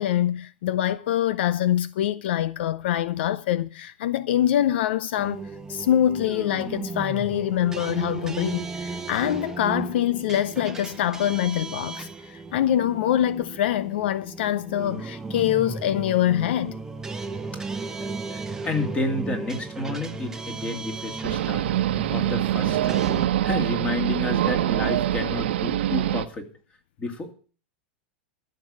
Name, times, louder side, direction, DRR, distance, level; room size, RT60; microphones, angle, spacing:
voice 1, 0.0-5.4 5.7-16.7, left 11 dB, 70° left, 0.6 m, -24 dB
sound 1, 5.2-23.3, right 3 dB, 10° right, 0.9 m, -35 dB
voice 2, 18.0-23.0 23.4-26.5 27.0-27.3, left 2 dB, 20° left, 2.5 m, -31 dB
sound 2, 21.2-26.2, right 12 dB, 80° right, 1.1 m, -24 dB
13.5 x 6.7 x 8.6 m
supercardioid pair, 145°, 6 cm